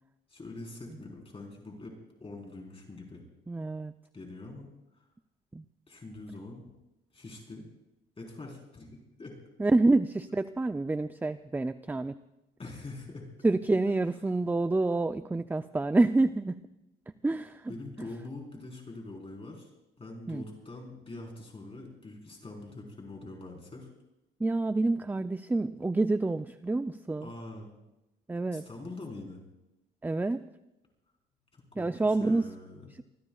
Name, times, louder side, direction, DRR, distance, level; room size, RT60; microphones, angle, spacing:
voice 1, 0.3-1.9 2.2-3.2 4.1-4.7 5.9-6.6 7.1-7.6 8.2-9.3 12.6-13.2 17.7-19.7 20.0-23.9 27.2-27.7 28.5-29.4 31.5-32.9, left 2 dB, 30° left, 0 dB, 4.1 m, -44 dB
voice 2, 3.5-3.9 5.5-5.6 9.6-12.2 13.4-16.5 17.2-18.1 20.3-20.4 24.4-27.3 28.3-28.6 30.0-30.4 31.8-32.5, right 2 dB, 10° right, 11 dB, 0.4 m, -28 dB
24.5 x 20.5 x 2.4 m, 0.93 s
cardioid pair, 90°, 20 cm